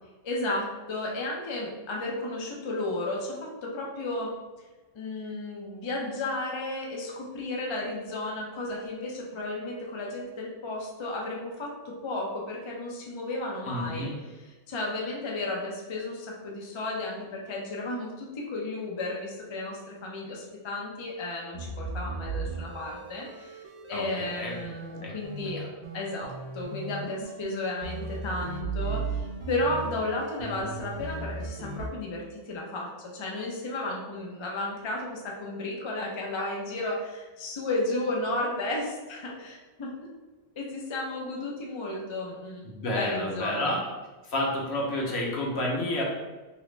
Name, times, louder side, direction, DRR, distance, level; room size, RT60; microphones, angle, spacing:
voice 1, 0.2-4.3 4.9-14.1 14.7-25.6 25.9-39.9 40.6-43.8, left 2 dB, 45° left, -2 dB, 0.3 m, -33 dB
voice 2, 13.7-14.1 23.9-24.5 24.9-25.1 25.6-25.7 42.6-43.8 44.2-46.0, left 1 dB, 65° left, -2 dB, 1.0 m, -30 dB
sound 1, 21.5-31.9, right 3 dB, 70° right, 0.8 m, -37 dB
2.9 x 2.8 x 3.2 m, 1.2 s
omnidirectional pair, 1.2 m